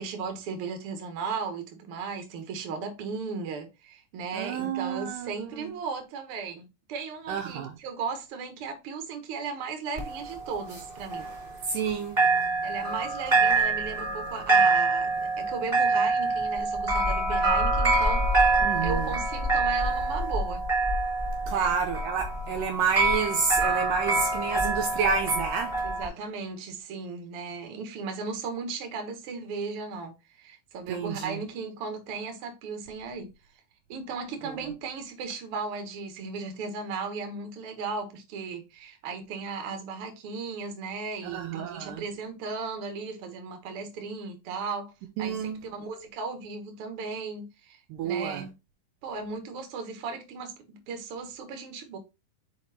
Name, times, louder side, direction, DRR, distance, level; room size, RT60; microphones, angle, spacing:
voice 1, 0.0-11.3 12.6-18.2 18.8-20.6 21.5-21.7 25.8-33.3 33.9-44.9 45.2-48.5 49.0-52.0, right 4 dB, 55° right, 1.7 m, -36 dB
voice 2, 4.3-5.7 7.3-7.7 11.7-12.2 18.6-19.1 21.5-25.8 30.9-31.4 41.2-42.0 45.2-45.6 47.9-48.4, right 6 dB, 75° right, 2.1 m, -29 dB
sound 1, 10.0-11.9 12.2-26.1, right 3 dB, 15° right, 2.5 m, -26 dB
5.1 x 4.8 x 4.2 m
omnidirectional pair, 4.3 m